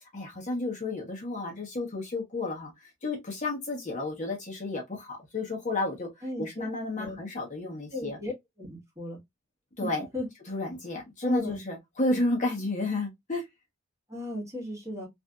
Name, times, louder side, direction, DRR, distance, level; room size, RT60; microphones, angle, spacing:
voice 1, 0.1-8.2 9.8-10.1 10.5-13.4, left 2 dB, 40° left, 1.0 m, -32 dB
voice 2, 6.2-6.7 6.9-7.2 7.9-8.3 8.6-9.2 9.8-10.3 11.2-11.6 14.1-15.1, left 1 dB, 15° right, 1.4 m, -36 dB
3.2 x 2.6 x 2.3 m
head